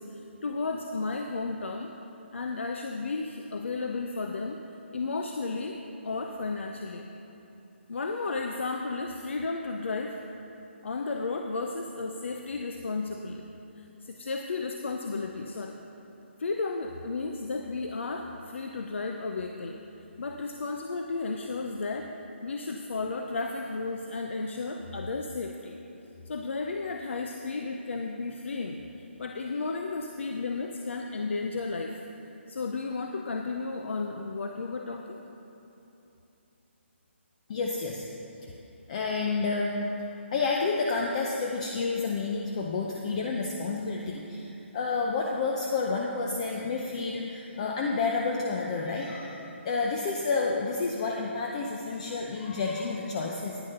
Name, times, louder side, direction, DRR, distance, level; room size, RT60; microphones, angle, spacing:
voice 1, 0.0-1.9 2.3-4.6 4.9-7.1 7.9-10.2 10.8-13.4 13.8-15.8 16.4-19.8 20.2-22.1 22.4-25.8 26.3-32.0 32.5-35.2, left 3 dB, 75° left, 3 dB, 0.6 m, -33 dB
voice 2, 37.5-38.1 38.4-38.5 38.9-39.8 40.3-53.6, left 4 dB, 35° left, -1 dB, 0.6 m, -30 dB
10.0 x 6.4 x 5.6 m, 2.9 s
hypercardioid pair, 160°, 7 cm